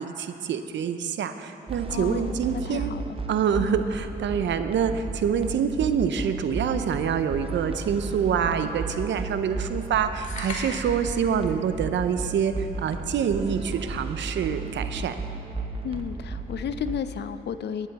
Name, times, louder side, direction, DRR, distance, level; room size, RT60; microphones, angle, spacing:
voice 1, 0.0-2.9 3.3-15.1, right 7 dB, 70° right, 9 dB, 0.6 m, -26 dB
sound 1, 1.7-17.0, right 3 dB, 30° right, 0.8 m, -34 dB
voice 2, 1.9-3.0 3.6-3.8 15.8-17.9, left 8 dB, 65° left, 12 dB, 0.5 m, -33 dB
sound 2, 10.2-11.1, left 2 dB, 40° left, 1.9 m, -36 dB
12.0 x 8.9 x 4.1 m, 2.7 s
cardioid pair, 80°, 19 cm